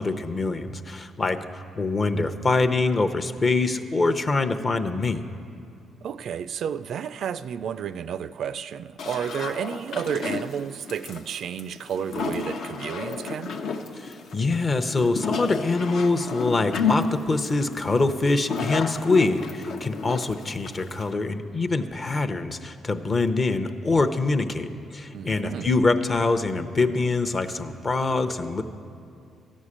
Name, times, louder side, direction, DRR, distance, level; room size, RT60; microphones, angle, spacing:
voice 1, 0.0-5.2 14.0-28.6, left 3 dB, 35° left, 0.7 m, -24 dB
voice 2, 6.0-13.6 25.1-25.7, right 8 dB, 65° right, 0.3 m, -31 dB
sound 1, 9.0-21.1, left 4 dB, 70° left, 0.8 m, -31 dB
13.5 x 6.3 x 9.8 m
cardioid pair, 90°, 0 cm